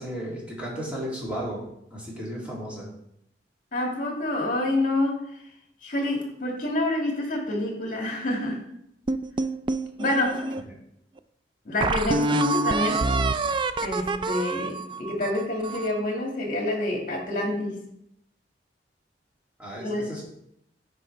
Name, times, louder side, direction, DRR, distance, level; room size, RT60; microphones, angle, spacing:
voice 1, 0.0-1.6 1.9-2.9 19.6-20.2, equal, 10° right, -6 dB, 2.6 m, -34 dB
voice 2, 3.7-5.2 5.8-8.6 10.0-10.5 11.7-13.1 13.8-17.8 19.8-20.2, left 1 dB, 50° left, 0 dB, 2.0 m, -27 dB
sound 1, 9.1-10.6 11.2-11.3 11.8-16.0, right 3 dB, 30° right, 0.3 m, -26 dB
9.6 x 5.3 x 3.4 m, 0.76 s
head